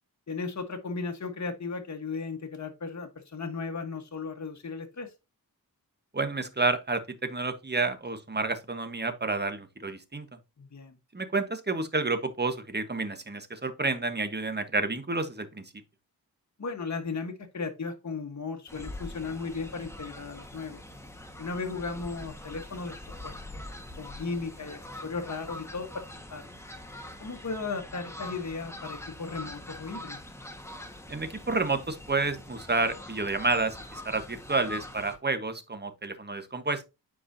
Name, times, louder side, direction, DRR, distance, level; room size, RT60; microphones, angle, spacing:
voice 1, 0.3-5.1 10.6-11.0 16.6-20.8 21.4-23.0 23.2-23.3 24.0-26.0 26.3-26.5 27.2-30.2, left 4 dB, 50° left, 1.5 m, -36 dB
voice 2, 6.1-10.3 11.1-15.6 31.1-36.9, right 3 dB, 25° right, 1.3 m, -30 dB
Fowl, 18.7-35.2, left 1 dB, 5° left, 1.6 m, -44 dB
9.7 x 4.8 x 2.8 m
cardioid pair, 60°, 37 cm